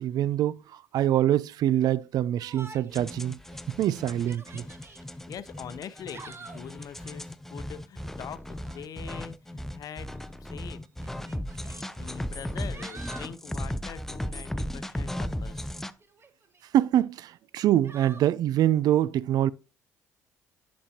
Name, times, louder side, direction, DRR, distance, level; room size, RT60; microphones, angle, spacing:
voice 1, 0.0-3.4 3.8-4.6 16.7-19.5, right 12 dB, 65° right, 0.4 m, -25 dB
Yell, 2.4-3.1 3.5-3.6 4.1-5.0 5.9-6.7 8.5-8.9 10.1-10.2 11.0-11.8 12.4-13.4 16.0-16.7 17.8-18.3, right 3 dB, 35° right, 1.2 m, -48 dB
sound 1, 2.9-15.9, left 1 dB, 5° left, 0.6 m, -36 dB
voice 2, 5.1-10.8 11.1-11.3 12.0-15.7, left 8 dB, 60° left, 0.7 m, -43 dB
10.0 x 5.3 x 2.8 m
supercardioid pair, 65°, 7 cm